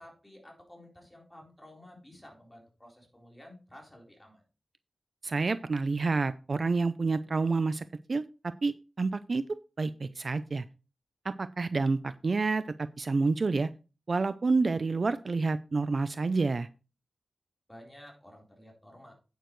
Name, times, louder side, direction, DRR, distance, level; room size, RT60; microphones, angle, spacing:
voice 1, 0.0-4.4 17.7-19.1, left 1 dB, 10° left, -1 dB, 3.9 m, -52 dB
voice 2, 5.2-9.4 9.8-10.6 11.2-13.7 14.1-16.7, right 3 dB, 45° right, 13 dB, 0.4 m, -29 dB
9.1 x 9.0 x 3.1 m, 0.33 s
wide cardioid pair, 120°, 0 cm